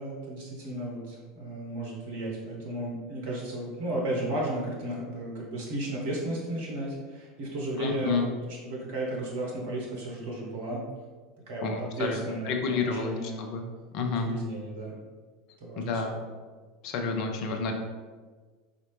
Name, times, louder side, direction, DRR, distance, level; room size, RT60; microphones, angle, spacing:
voice 1, 0.0-10.8 11.5-13.4 14.1-15.0 15.6-16.2, right 1 dB, 55° right, -3 dB, 0.8 m, -34 dB
voice 2, 7.8-8.2 11.6-13.6 13.9-14.3 15.8-16.2 16.8-17.7, left 4 dB, 50° left, 3 dB, 0.5 m, -30 dB
4.2 x 2.5 x 3.1 m, 1.4 s
figure-of-eight pair, 75°, 0 cm